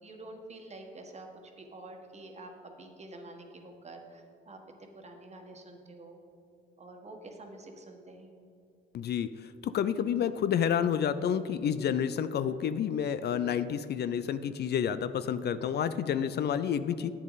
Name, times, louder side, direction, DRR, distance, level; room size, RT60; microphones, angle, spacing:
voice 1, 0.0-6.2 6.8-8.3, right 2 dB, 35° right, 3 dB, 1.4 m, -48 dB
voice 2, 8.9-9.3 9.6-17.1, left 8 dB, 55° left, 13 dB, 0.4 m, -29 dB
10.5 x 8.4 x 4.0 m, 2.4 s
cardioid pair, 90°, 20 cm